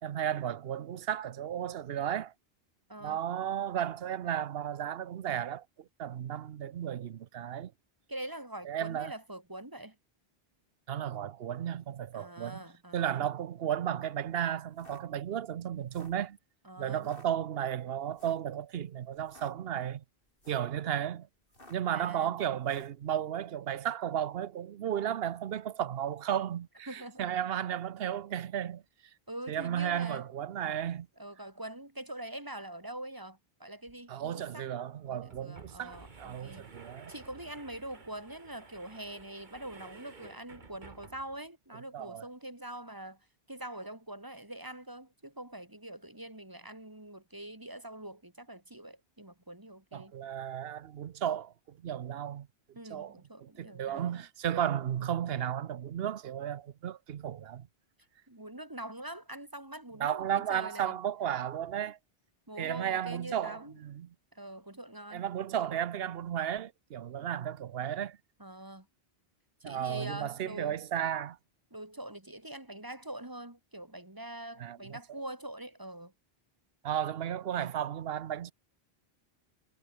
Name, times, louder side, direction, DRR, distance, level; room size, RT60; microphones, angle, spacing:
voice 1, 0.0-2.3 3.0-7.7 8.7-9.1 10.9-12.6 12.9-16.4 16.8-20.0 20.5-21.3 21.7-28.8 29.5-31.1 34.1-37.1 41.9-42.3 49.9-52.5 52.9-53.1 53.4-57.7 60.0-62.0 62.6-64.1 65.1-68.2 69.6-71.4 74.6-75.0 76.8-78.5, right 10 dB, 75° right, 1.0 m, -34 dB
voice 2, 2.9-3.2 8.1-10.0 12.1-13.3 16.6-17.1 21.9-22.4 26.9-27.3 29.3-30.3 31.2-34.7 35.1-36.7 37.1-43.2 43.5-50.2 52.8-54.3 58.3-61.0 62.5-63.7 64.3-65.3 68.4-68.9 69.6-70.8 71.7-76.1, right 1 dB, 20° right, 2.3 m, -44 dB
sound 1, 14.7-15.0 15.8-16.2 17.0-17.3 18.1-18.5 19.2-19.5 20.3-20.7 21.5-21.9 22.6-23.0, left 1 dB, 60° left, 6.3 m, -55 dB
sound 2, 33.9-34.0 34.2-34.3 35.1-41.5, right 4 dB, 50° right, 1.7 m, -53 dB
omnidirectional pair, 1.0 m